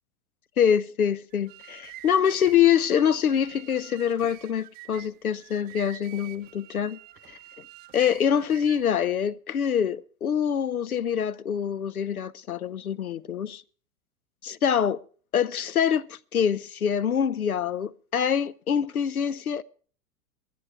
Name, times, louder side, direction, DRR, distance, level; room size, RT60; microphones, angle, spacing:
voice 1, 0.6-7.0 7.3-7.4 7.9-13.6 14.4-15.0 15.3-19.6, left 8 dB, 80° left, 0.7 m, -25 dB
sound 1, 1.3-8.9, right 17 dB, 20° right, 0.6 m, -47 dB
23.0 x 9.3 x 4.9 m
figure-of-eight pair, 100°, 43 cm